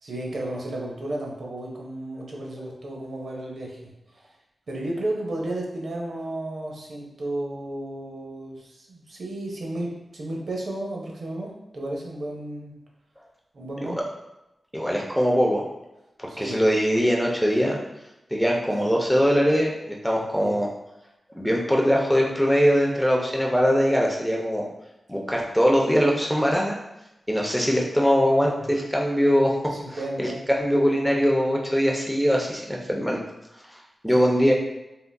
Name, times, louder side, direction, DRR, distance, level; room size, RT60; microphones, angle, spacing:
voice 1, 0.0-3.9 4.7-12.8 13.5-14.0 16.3-16.6 18.7-18.9 20.2-20.6 28.4-28.6 29.7-30.4 34.2-34.3, right 1 dB, 65° right, -2 dB, 0.6 m, -33 dB
voice 2, 14.7-15.7 16.4-17.8 18.3-20.7 21.4-24.7 25.1-26.8 27.3-29.6 30.2-30.3 30.6-33.2 34.0-34.5, equal, ahead, -1 dB, 0.5 m, -21 dB
3.6 x 2.4 x 2.2 m, 0.94 s
wide cardioid pair, 145°, 0 cm